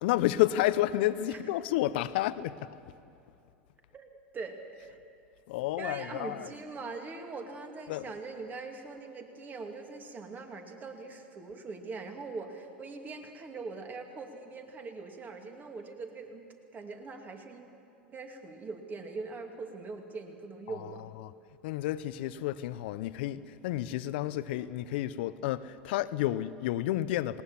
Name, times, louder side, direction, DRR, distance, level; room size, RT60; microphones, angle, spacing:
voice 1, 0.0-2.7 5.5-6.5 7.9-8.1 20.7-20.8 21.2-21.3 21.6-27.4, left 14 dB, 70° left, 0.7 m, -30 dB
voice 2, 3.9-4.9 5.8-16.5 16.7-17.7 18.1-21.0, right 4 dB, 30° right, 2.5 m, -42 dB
19.5 x 19.0 x 7.2 m
hypercardioid pair, 85°, 6 cm